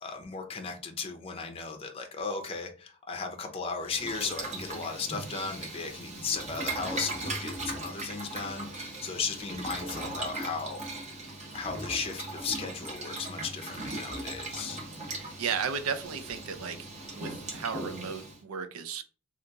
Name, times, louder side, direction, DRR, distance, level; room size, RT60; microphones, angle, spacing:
voice 1, 0.0-10.8 11.5-14.8, left 5 dB, 25° left, 0.5 m, -36 dB
Boiling, 3.8-18.4, right 2 dB, 35° right, 0.9 m, -38 dB
voice 2, 15.1-16.9 17.1-19.0, right 6 dB, 75° right, 0.5 m, -34 dB
2.8 x 2.4 x 3.4 m
head